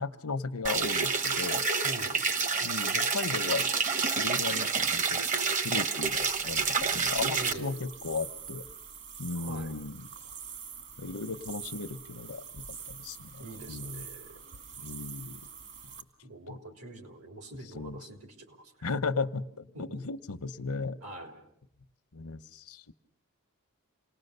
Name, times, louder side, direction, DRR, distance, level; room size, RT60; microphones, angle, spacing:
voice 1, 0.0-1.7 2.6-3.7 4.2-5.2 5.6-8.7 9.2-10.1 11.0-14.1 14.8-15.4 16.5-16.6 17.7-18.1 18.8-21.0 22.1-22.9, left 4 dB, 80° left, 12 dB, 0.9 m, -36 dB
sound 1, 0.6-7.5, right 5 dB, 35° right, 1.0 m, -28 dB
voice 2, 1.8-2.2 7.3-7.8 9.4-9.7 13.4-14.4 16.2-18.2 18.5-18.7 19.7-20.0 21.0-21.3, right 2 dB, 75° right, 5 dB, 3.5 m, -44 dB
sound 2, 6.0-16.0, right 7 dB, 50° right, 2.0 m, -45 dB
28.0 x 19.5 x 6.7 m, 0.67 s
head